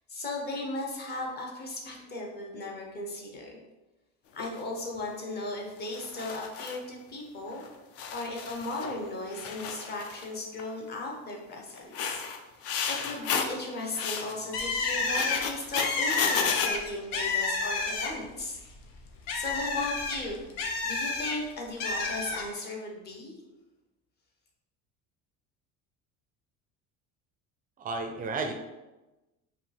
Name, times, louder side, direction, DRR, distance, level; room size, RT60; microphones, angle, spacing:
voice 1, 0.1-3.6 4.3-7.6 8.1-12.2 12.9-18.6 19.3-20.4 20.8-23.3, left 2 dB, 30° left, 0 dB, 1.0 m, -36 dB
sound 1, 4.4-4.6 5.9-6.8 7.6-7.7 8.0-9.0 9.3-10.3 10.6-10.9 11.8-13.6 13.9-14.3 15.0-16.7, left 6 dB, 50° left, 0.5 m, -33 dB
Bird, 14.5-18.4 18.7-21.3 21.8-22.4, left 4 dB, 90° left, 0.8 m, -30 dB
voice 2, 27.8-28.5, right 3 dB, 25° right, 5 dB, 0.4 m, -32 dB
4.9 x 2.8 x 3.4 m, 1.1 s
cardioid pair, 150°, 32 cm